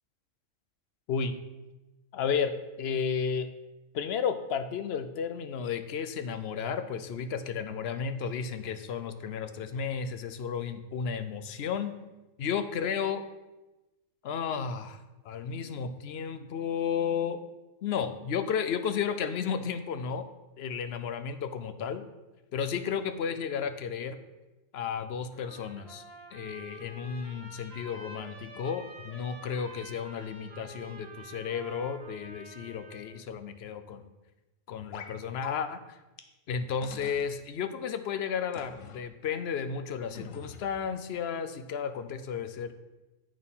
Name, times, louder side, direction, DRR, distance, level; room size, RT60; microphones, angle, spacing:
voice 1, 2.1-3.5 3.9-11.9 12.4-13.2 14.2-17.4 17.8-20.3 20.6-22.0 22.5-24.2 24.7-26.0 26.3-34.1 34.7-35.8 36.5-42.7, left 7 dB, 60° left, 10 dB, 0.7 m, -33 dB
Trumpet, 25.3-33.2, right 2 dB, 50° right, 1.5 m, -49 dB
sound 1, 34.9-35.1 35.4-35.5 36.2-36.3 36.8-37.3 38.5-39.0 40.1-40.9, left 5 dB, 75° left, 1.1 m, -45 dB
8.7 x 4.4 x 5.4 m, 1.1 s
omnidirectional pair, 1.4 m